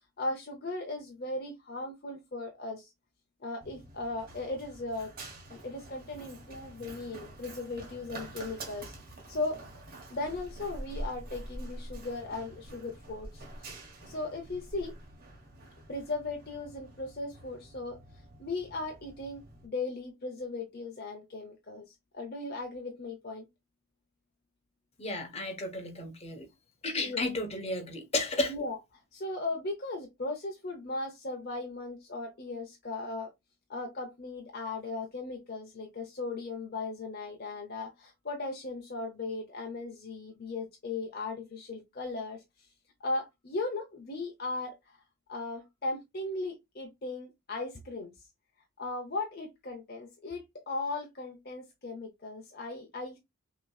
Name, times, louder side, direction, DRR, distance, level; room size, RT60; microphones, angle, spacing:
voice 1, 0.2-2.9 3.4-5.1 5.5-8.9 9.3-9.8 10.1-13.7 14.1-14.9 15.9-18.0 18.4-23.5 27.0-27.3 28.5-33.3 33.7-42.7 43.0-45.0 45.3-48.1 48.8-53.2, left 2 dB, 45° left, 0.8 m, -37 dB
Run, 3.6-19.7, right 1 dB, 40° right, 1.4 m, -46 dB
voice 2, 25.0-26.5 26.8-28.5, left 2 dB, 25° left, 1.1 m, -33 dB
6.0 x 3.0 x 2.4 m
head